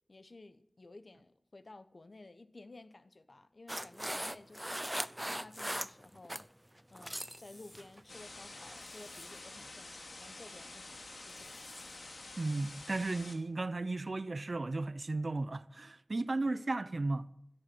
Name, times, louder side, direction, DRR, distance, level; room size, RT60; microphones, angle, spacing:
voice 1, 0.1-4.9 5.3-6.5 6.9-11.8, left 2 dB, 55° left, 1.1 m, -54 dB
sound 1, 3.7-6.5 6.8-7.4 7.7-8.0 8.6-8.8, equal, 10° right, 0.6 m, -39 dB
sound 2, 5.5-5.7 7.2-7.8 8.8-9.4 11.3-12.0, equal, 25° left, 6.4 m, -58 dB
sound 3, 8.1-13.3, left 2 dB, 80° left, 2.7 m, -49 dB
voice 2, 12.4-17.3, right 2 dB, 55° right, 0.7 m, -35 dB
17.0 x 14.0 x 6.2 m
wide cardioid pair, 75°, 0 cm